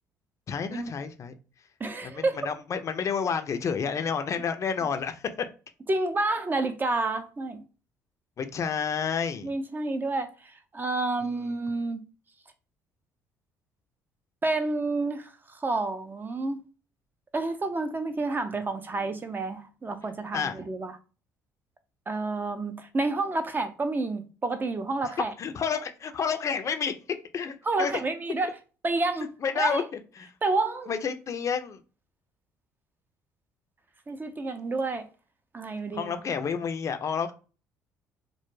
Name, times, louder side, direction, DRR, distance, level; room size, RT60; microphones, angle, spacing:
voice 1, 0.5-1.3 2.0-5.5 8.4-9.5 20.3-20.6 25.4-27.0 27.3-27.9 29.4-29.8 30.2-30.3 30.9-31.8 35.9-37.3, left 6 dB, 45° left, 0.4 m, -30 dB
voice 2, 1.8-2.4 5.9-7.6 9.4-12.0 14.4-16.6 17.3-21.0 22.1-25.3 27.6-28.5 28.8-29.9 30.4-30.9 34.1-35.1 35.5-36.1, right 3 dB, 25° right, 0.4 m, -29 dB
2.2 x 2.1 x 3.1 m
supercardioid pair, 70°, 7 cm